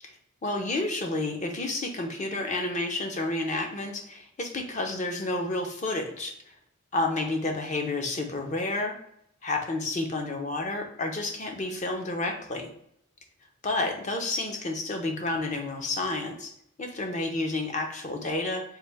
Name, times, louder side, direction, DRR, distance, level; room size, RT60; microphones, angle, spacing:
voice 1, 0.4-6.3 6.9-9.0 9.4-12.7 13.6-16.5 16.8-18.6, left 2 dB, 35° left, 4 dB, 0.5 m, -30 dB
3.3 x 2.5 x 3.3 m, 0.72 s
head